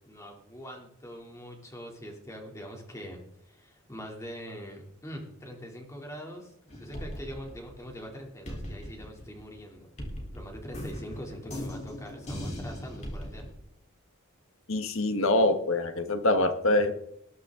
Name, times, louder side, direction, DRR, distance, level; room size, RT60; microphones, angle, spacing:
voice 1, 0.0-6.5 6.8-9.9 10.3-13.5, equal, 15° left, 1 dB, 3.2 m, -43 dB
sound 1, 6.7-8.1 8.5-13.5, equal, 30° left, 3.9 m, -39 dB
voice 2, 14.7-16.9, left 2 dB, 65° left, 8 dB, 1.6 m, -25 dB
20.0 x 11.0 x 3.9 m, 0.75 s
head